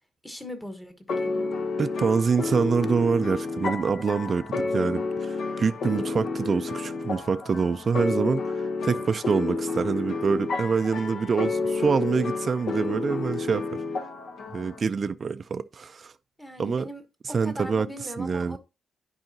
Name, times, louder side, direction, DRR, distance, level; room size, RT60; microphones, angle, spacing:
voice 1, 0.2-1.5 16.4-17.0 17.4-18.6, left 1 dB, 10° left, 1.2 m, -40 dB
sound 1, 1.1-14.8, left 3 dB, 65° left, 1.0 m, -30 dB
voice 2, 1.8-13.6 14.5-16.1 16.6-16.9 17.3-17.9 18.2-18.6, right 5 dB, 40° right, 0.4 m, -26 dB
10.5 x 4.8 x 2.8 m
cardioid pair, 130°, 0 cm